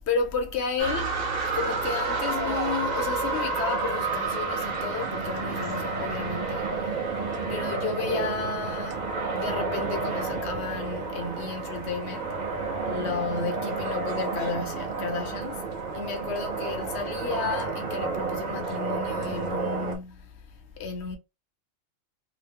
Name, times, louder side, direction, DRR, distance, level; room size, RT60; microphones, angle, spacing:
voice 1, 0.1-1.1 1.4-7.0 7.5-9.0 9.3-12.4 12.8-15.6 15.9-20.3 20.8-21.2, left 5 dB, 60° left, 0.8 m, -32 dB
sound 1, 0.8-20.0, right 4 dB, 40° right, 0.7 m, -30 dB
2.9 x 2.0 x 3.5 m
omnidirectional pair, 1.4 m